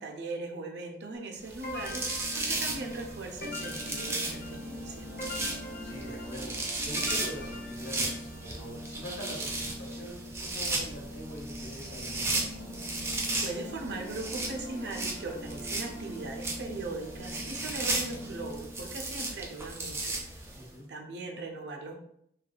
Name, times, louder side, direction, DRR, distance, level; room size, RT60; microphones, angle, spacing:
voice 1, 0.0-5.1 13.1-20.2 20.9-21.9, right 3 dB, 75° right, 1 dB, 0.5 m, -39 dB
sound 1, 1.5-20.7, right 2 dB, 15° right, 0.3 m, -36 dB
sound 2, 1.6-18.9, equal, 85° left, 0.6 m, -44 dB
sound 3, 1.6-8.6, left 2 dB, 50° left, 0.7 m, -44 dB
voice 2, 5.8-12.5 20.5-20.8, equal, 70° left, -3 dB, 1.1 m, -43 dB
3.3 x 2.3 x 2.3 m, 0.72 s
head